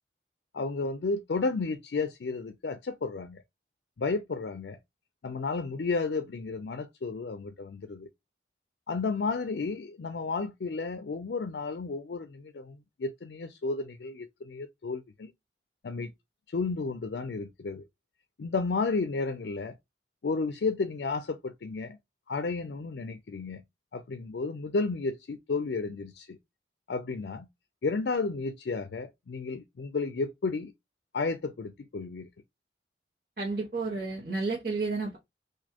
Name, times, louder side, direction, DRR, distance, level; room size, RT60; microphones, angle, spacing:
voice 1, 0.5-3.4 4.0-4.8 5.2-8.1 8.9-15.3 15.8-16.1 16.5-17.8 18.4-19.8 20.2-22.0 22.3-23.6 23.9-26.4 26.9-27.5 27.8-30.7 31.1-32.3, left 4 dB, 75° left, 0.4 m, -32 dB
voice 2, 33.4-35.2, right 3 dB, 50° right, 1.3 m, -31 dB
4.1 x 2.6 x 2.8 m
head